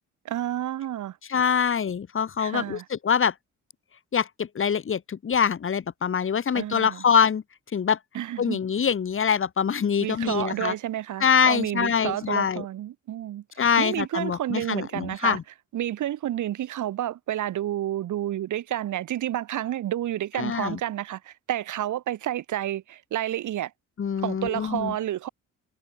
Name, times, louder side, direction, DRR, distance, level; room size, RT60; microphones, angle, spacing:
voice 1, 0.2-1.2 2.4-2.8 6.5-7.0 8.1-8.6 10.0-15.4 15.7-23.7 24.2-25.3, right 12 dB, 75° right, 7.4 m, -30 dB
voice 2, 1.3-3.3 4.1-7.4 7.7-8.0 8.4-10.7 11.2-12.6 13.6-15.4 20.4-20.8 24.0-24.9, left 7 dB, 45° left, 2.1 m, -24 dB
cardioid pair, 90°, 30 cm